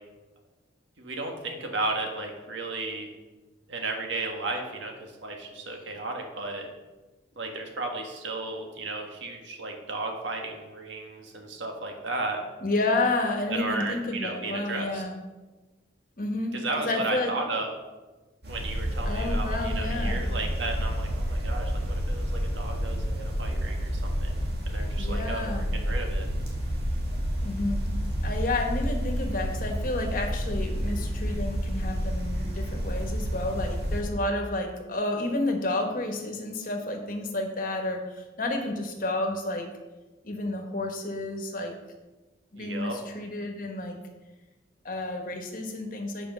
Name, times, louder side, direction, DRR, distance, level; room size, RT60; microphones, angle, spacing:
voice 1, 1.0-3.1 3.7-6.7 7.4-12.4 13.5-15.0 16.5-17.7 18.5-24.4 24.7-26.2 42.5-43.0, right 2 dB, 80° right, 2 dB, 1.6 m, -34 dB
voice 2, 12.6-15.2 16.2-17.4 19.0-20.2 25.0-25.7 27.4-27.9 28.2-39.7 40.2-41.7 42.5-44.1 44.8-46.3, left 2 dB, 45° left, 3 dB, 1.2 m, -30 dB
sound 1, 18.4-34.0, equal, 55° right, 2.0 m, -29 dB
7.7 x 5.0 x 6.1 m, 1.2 s
head